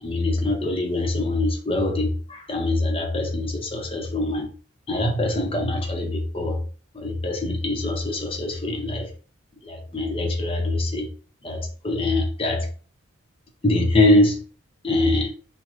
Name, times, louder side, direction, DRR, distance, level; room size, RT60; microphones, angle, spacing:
voice 1, 0.0-4.5 4.9-6.6 6.9-9.1 9.6-11.1 11.4-12.7 13.6-14.4 14.8-15.3, left 2 dB, 25° left, 3 dB, 0.9 m, -23 dB
6.3 x 2.3 x 3.5 m, 0.41 s
head